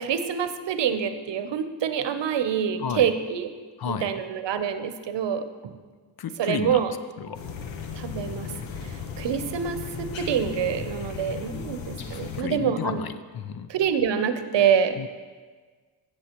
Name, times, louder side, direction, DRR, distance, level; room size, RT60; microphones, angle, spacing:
voice 1, 0.0-3.5 3.9-5.7 6.4-6.9 7.9-8.5 9.2-13.0 13.7-15.0, right 8 dB, 70° right, 10 dB, 0.8 m, -26 dB
voice 2, 3.8-4.1 6.2-7.4 12.1-13.7 15.0-15.1, left 7 dB, 55° left, 12 dB, 0.6 m, -32 dB
sound 1, 7.3-12.4, left 6 dB, 85° left, 0.9 m, -36 dB
14.5 x 7.2 x 3.0 m, 1.4 s
cardioid pair, 55°, 44 cm